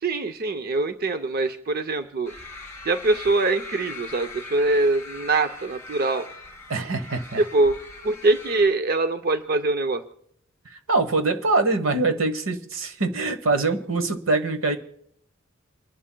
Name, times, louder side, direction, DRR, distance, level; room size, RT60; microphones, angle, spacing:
voice 1, 0.0-2.3 2.8-6.3 7.4-7.7 8.0-10.0, right 2 dB, 50° right, 9 dB, 0.6 m, -23 dB
sound 1, 2.2-8.7, left 3 dB, 15° left, 3.1 m, -41 dB
voice 2, 6.7-7.4 10.6-14.8, right 3 dB, 80° right, 9 dB, 1.1 m, -24 dB
28.5 x 11.0 x 2.2 m, 0.71 s
head